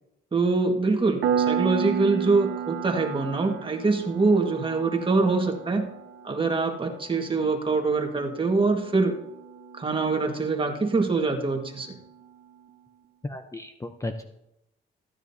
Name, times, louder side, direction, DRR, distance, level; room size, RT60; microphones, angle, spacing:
voice 1, 0.3-5.9 6.2-9.2 9.7-11.9, right 3 dB, 25° right, 3 dB, 1.7 m, -24 dB
Piano, 1.2-11.6, right 7 dB, 85° right, 1.2 m, -33 dB
voice 2, 13.2-14.2, left 2 dB, 15° left, 6 dB, 0.7 m, -34 dB
14.5 x 9.8 x 2.8 m, 0.85 s
cardioid pair, 90°, 20 cm